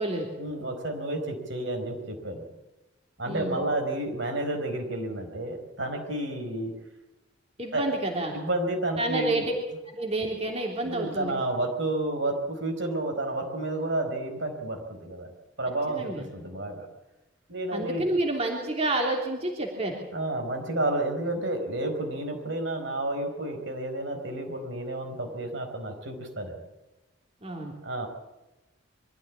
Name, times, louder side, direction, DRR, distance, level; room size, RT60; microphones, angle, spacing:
voice 1, 0.4-2.4 3.2-6.7 7.7-7.9 8.3-9.5 10.8-15.3 15.6-16.9 17.5-18.0 20.1-26.5 27.8-28.1, right 2 dB, 65° right, 3 dB, 4.6 m, -31 dB
voice 2, 3.3-3.6 7.6-8.3 9.0-9.5 9.9-11.3 15.9-16.3 17.7-20.0 27.4-27.7, right 2 dB, 30° right, 1 dB, 3.3 m, -29 dB
24.0 x 14.0 x 8.5 m, 1.1 s
head